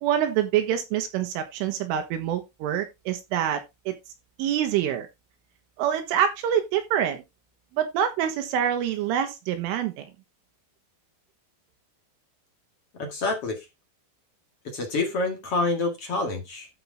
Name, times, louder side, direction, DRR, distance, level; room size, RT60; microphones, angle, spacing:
voice 1, 0.0-3.6 3.9-4.0 4.4-5.1 5.8-7.2 7.7-10.1, right 9 dB, 80° right, 3.9 m, -26 dB
voice 2, 13.0-13.6 14.6-16.7, left 3 dB, 45° left, 2.1 m, -27 dB
12.5 x 5.6 x 3.6 m
omnidirectional pair, 5.7 m